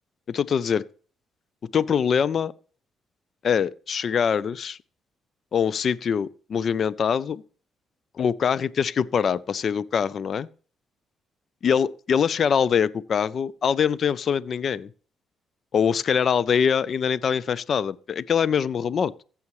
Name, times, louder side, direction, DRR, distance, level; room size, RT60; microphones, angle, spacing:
voice 1, 0.3-0.8 1.7-2.5 3.4-4.8 5.5-7.4 8.2-10.5 11.6-14.9 15.7-19.2, left 7 dB, 55° left, 0.4 m, -23 dB
15.0 x 7.0 x 3.1 m
cardioid pair, 90°, 0 cm